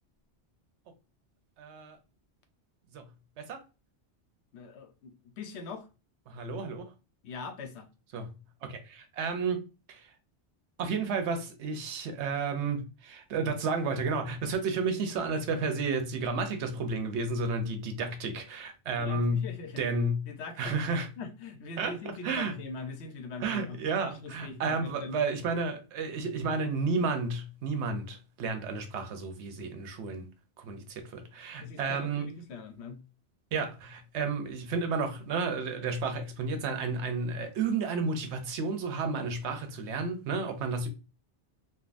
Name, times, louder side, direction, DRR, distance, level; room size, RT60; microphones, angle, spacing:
voice 1, 1.6-2.0 2.9-3.0 3.4-3.6 6.3-6.9 8.1-8.3 8.6-10.1 10.8-20.3 20.6-21.1 21.8-21.9 22.2-22.6 23.4-30.2 30.6-32.3 33.5-40.9, right 4 dB, 85° right, 0.9 m, -32 dB
voice 2, 4.5-5.9 7.2-7.9 19.0-19.8 20.3-20.8 21.2-25.2 31.6-33.0, left 4 dB, 75° left, 0.9 m, -42 dB
3.4 x 2.2 x 2.4 m
omnidirectional pair, 1.1 m